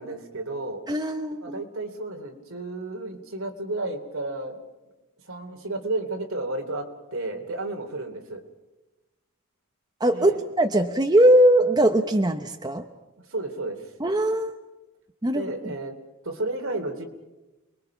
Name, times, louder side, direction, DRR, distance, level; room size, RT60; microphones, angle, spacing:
voice 1, 0.0-0.8 1.4-4.6 5.3-8.4 10.1-10.4 13.3-13.8 15.3-15.9 16.2-17.1, right 2 dB, 65° right, 4 dB, 3.0 m, -32 dB
voice 2, 0.9-1.6 10.0-10.3 10.6-12.8 14.0-14.5 15.2-15.7, right 1 dB, 20° right, 6 dB, 0.9 m, -20 dB
29.0 x 21.5 x 5.9 m, 1.1 s
head